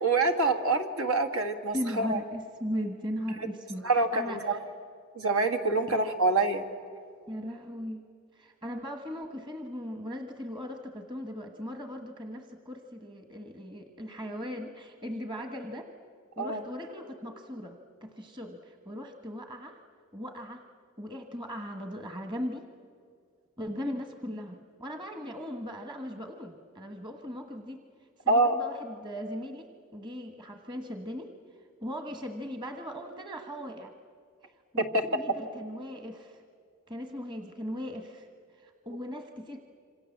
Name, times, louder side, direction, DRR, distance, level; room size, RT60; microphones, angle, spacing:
voice 1, 0.0-2.2 3.8-4.6 5.2-6.6 16.4-16.6 28.3-28.6 34.8-35.0, right 3 dB, 80° right, 6 dB, 2.0 m, -26 dB
voice 2, 1.7-4.6 5.9-6.0 7.3-8.0 8.3-15.9 16.4-19.8 20.1-20.6 21.0-22.6 23.6-27.8 28.2-31.3 31.8-33.9 34.4-36.4 36.9-38.3 38.5-39.6, equal, 25° right, 6 dB, 1.4 m, -38 dB
27.0 x 26.0 x 7.4 m, 2.3 s
head